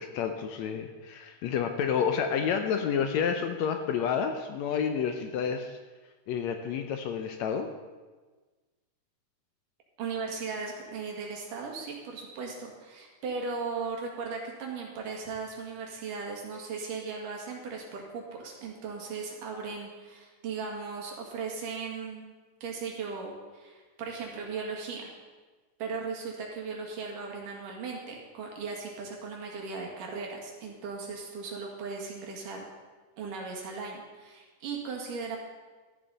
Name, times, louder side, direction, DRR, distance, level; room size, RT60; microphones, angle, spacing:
voice 1, 0.0-5.8 6.3-7.7, left 7 dB, 75° left, 6 dB, 1.7 m, -29 dB
voice 2, 10.0-22.3 22.6-25.1 25.8-32.6 33.2-35.4, right 5 dB, 80° right, 0 dB, 3.5 m, -37 dB
13.5 x 11.0 x 4.1 m, 1.3 s
omnidirectional pair, 3.7 m